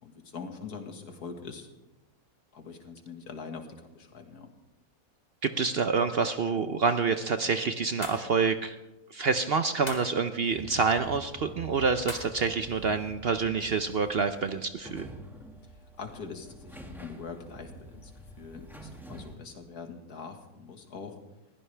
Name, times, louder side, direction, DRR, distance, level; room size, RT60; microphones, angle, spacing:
voice 1, 0.0-1.7 2.5-4.5 16.0-18.1 18.4-21.2, left 5 dB, 85° left, 5 dB, 2.1 m, -43 dB
voice 2, 5.4-8.8 9.1-15.1, right 5 dB, 55° right, 9 dB, 0.7 m, -27 dB
sound 1, 8.0-8.3 9.9-10.1 12.1-12.4, left 2 dB, 25° left, 1.8 m, -39 dB
sound 2, 10.5-19.4, equal, ahead, 1.7 m, -47 dB
21.0 x 15.5 x 3.4 m, 1.0 s
omnidirectional pair, 1.6 m